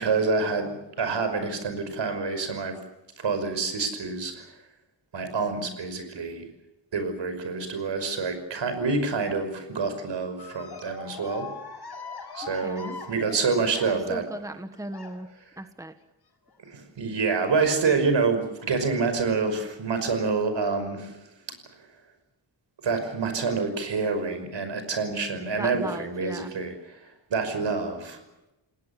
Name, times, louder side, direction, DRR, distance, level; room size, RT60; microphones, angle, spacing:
voice 1, 0.0-2.8 3.2-4.5 5.1-6.5 6.9-11.5 12.3-14.2 16.6-21.2 22.8-28.2, right 4 dB, 80° right, 8 dB, 5.7 m, -27 dB
sound 1, 10.4-14.3 14.9-15.4 16.5-16.8 17.3-17.4 18.6-18.7 19.6-19.7, left 5 dB, 60° left, 5.9 m, -41 dB
voice 2, 12.6-13.0 13.9-15.3 15.6-15.9 25.5-26.5, right 1 dB, 5° right, 8 dB, 1.5 m, -37 dB
29.0 x 19.5 x 7.2 m, 0.94 s
wide cardioid pair, 115°, 43 cm